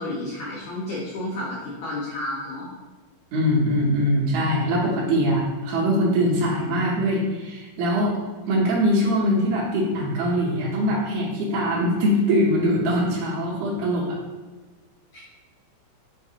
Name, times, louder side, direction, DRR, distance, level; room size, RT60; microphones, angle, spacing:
voice 1, 0.0-2.7 15.1-15.2, left 1 dB, 85° left, -6 dB, 1.5 m, -31 dB
voice 2, 3.3-8.1 8.5-14.2, equal, 75° right, -6 dB, 1.6 m, -22 dB
6.8 x 2.4 x 2.8 m, 1.3 s
omnidirectional pair, 4.1 m